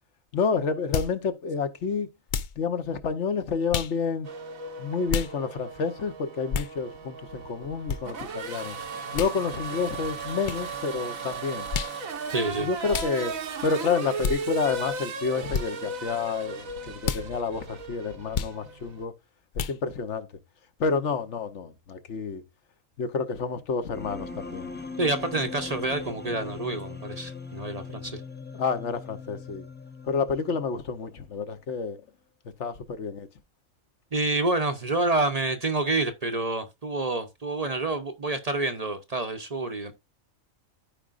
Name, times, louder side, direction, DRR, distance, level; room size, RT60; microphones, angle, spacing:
voice 1, 0.3-2.1 2.6-4.3 4.8-8.8 9.1-11.7 12.6-13.4 13.6-19.1 19.5-20.3 20.8-22.4 23.0-24.7 28.5-29.6 30.1-32.0 32.6-33.3, left 5 dB, 60° left, 1.2 m, -29 dB
sound 1, 0.9-1.2 2.3-2.6 3.7-3.9 5.1-5.3 6.5-6.7 7.9-8.0 9.1-9.3 10.4-10.6 11.7-12.0 12.9-13.1 14.2-14.4 15.5-15.7 17.0-17.2 18.3-18.6 19.5-19.8, left 7 dB, 80° left, 0.4 m, -29 dB
Race car auto racing / Accelerating revving vroom, 4.2-19.0, right 4 dB, 90° right, 1.6 m, -36 dB
voice 2, 12.3-12.7 25.0-28.2 34.1-39.9, right 2 dB, 35° right, 0.7 m, -28 dB
sound 2, 23.9-31.0, left 4 dB, 10° left, 0.7 m, -40 dB
13.5 x 4.9 x 2.5 m
omnidirectional pair, 1.4 m